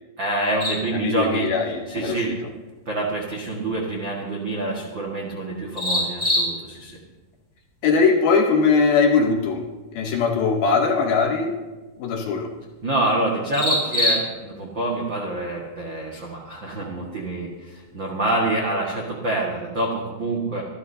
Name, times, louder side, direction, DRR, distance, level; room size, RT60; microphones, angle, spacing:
voice 1, 0.2-1.5 1.9-2.3 2.8-7.0 12.3-12.4 12.8-20.6, right 2 dB, 75° right, -2 dB, 1.0 m, -26 dB
sound 1, 0.6-18.4, left 1 dB, 10° left, 5.8 m, -33 dB
voice 2, 0.9-2.3 7.8-9.6 9.9-11.6 12.0-12.5, left 5 dB, 70° left, 3 dB, 2.5 m, -20 dB
25.5 x 13.0 x 2.8 m, 1.2 s
omnidirectional pair, 5.1 m